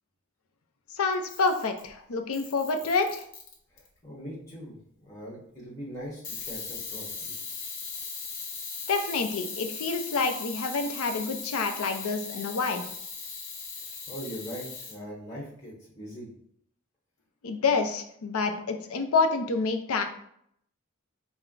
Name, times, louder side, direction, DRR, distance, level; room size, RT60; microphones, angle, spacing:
voice 1, 0.9-3.2 8.9-12.8 17.4-20.0, left 4 dB, 85° left, 6 dB, 0.5 m, -28 dB
Camera, 1.1-1.9 2.3-3.9 6.2-15.0, left 5 dB, 60° left, 0.9 m, -38 dB
voice 2, 3.7-7.4 13.8-16.3, equal, 15° left, -6 dB, 1.1 m, -41 dB
4.3 x 2.1 x 3.8 m, 0.69 s
head